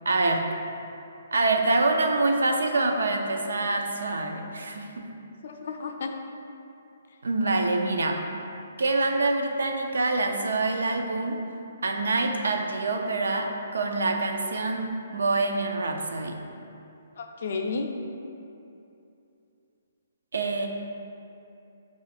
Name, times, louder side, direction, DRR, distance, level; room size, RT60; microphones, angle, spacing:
voice 1, 0.1-0.4 1.3-5.1 7.2-8.2 8.8-11.4 11.8-14.9 15.1-16.4 20.3-20.7, right 2 dB, 85° right, 3 dB, 0.5 m, -25 dB
voice 2, 5.4-6.1 17.2-17.9, left 4 dB, 60° left, 3 dB, 0.4 m, -32 dB
5.0 x 2.5 x 4.1 m, 2.7 s
hypercardioid pair, 155°, 0 cm